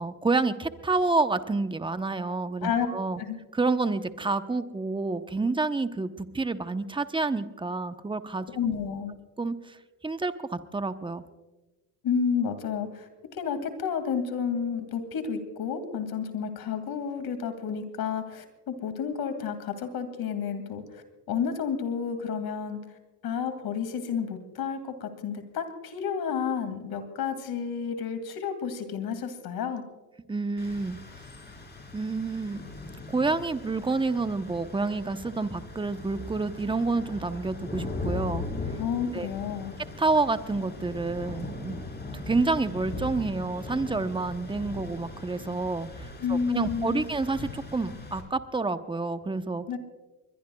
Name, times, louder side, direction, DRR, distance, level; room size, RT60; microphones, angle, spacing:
voice 1, 0.0-3.2 3.5-8.5 9.4-9.8 10.0-11.2 30.3-31.0 31.9-32.6 33.1-38.5 39.1-39.3 40.0-41.8 42.1-49.6, right 3 dB, 10° right, 10 dB, 0.9 m, -28 dB
voice 2, 8.5-9.2 12.0-22.8 23.2-29.8 38.8-39.7 46.2-47.0 49.7-49.8, left 6 dB, 55° left, 8 dB, 2.4 m, -31 dB
Rain, 30.6-48.2, left 2 dB, 25° left, 4.4 m, -39 dB
23.0 x 21.5 x 2.3 m, 1.2 s
supercardioid pair, 80°, 44 cm